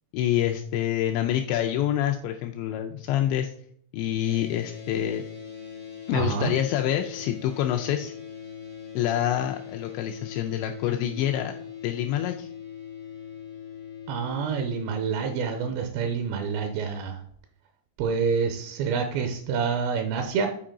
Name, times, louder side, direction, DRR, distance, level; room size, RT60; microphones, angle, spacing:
voice 1, 0.1-3.5 3.9-5.2 6.1-8.1 9.0-11.5 11.8-12.5, left 11 dB, 85° left, 4 dB, 2.6 m, -26 dB
sound 1, 4.2-15.7, left 8 dB, 50° left, 0.7 m, -41 dB
voice 2, 6.1-6.5 14.1-17.2 18.0-20.5, right 6 dB, 85° right, 5 dB, 2.7 m, -27 dB
8.9 x 4.5 x 3.7 m, 0.63 s
omnidirectional pair, 5.6 m